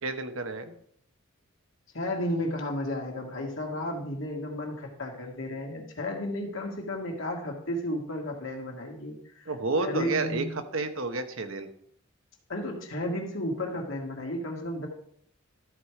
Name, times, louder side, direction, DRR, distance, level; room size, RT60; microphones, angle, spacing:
voice 1, 0.0-0.8 9.5-11.7, right 3 dB, 70° right, 7 dB, 1.0 m, -30 dB
voice 2, 1.9-9.5 9.8-10.5 12.5-14.9, left 1 dB, 65° left, 1 dB, 2.0 m, -33 dB
13.0 x 4.9 x 4.8 m, 0.64 s
head